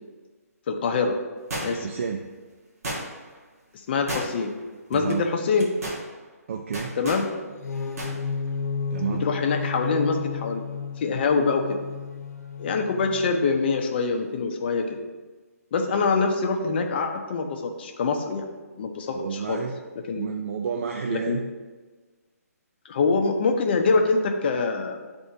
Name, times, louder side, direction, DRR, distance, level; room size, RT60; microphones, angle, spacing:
voice 1, 0.7-1.1 1.6-1.8 3.7-4.5 4.9-5.7 7.0-7.2 9.1-10.7 11.0-11.8 12.6-15.0 15.7-18.4 18.8-19.6 20.1-20.3 21.1-21.4 22.9-25.0, left 4 dB, 40° left, 3 dB, 0.7 m, -24 dB
sound 1, 1.5-2.0 2.8-3.4 4.1-4.6 4.9-5.1 5.6-6.0 6.7-7.3 8.0-8.2 8.5-8.6, right 1 dB, 65° right, 1.6 m, -33 dB
voice 2, 1.6-2.2 4.9-5.2 6.5-6.9 8.9-9.3 19.1-19.7 20.2-21.4, right 6 dB, 50° right, 4 dB, 0.4 m, -30 dB
sound 2, 7.5-13.4, left 5 dB, 75° left, 1.0 m, -32 dB
10.0 x 3.5 x 2.7 m, 1.3 s
hypercardioid pair, 155°, 9 cm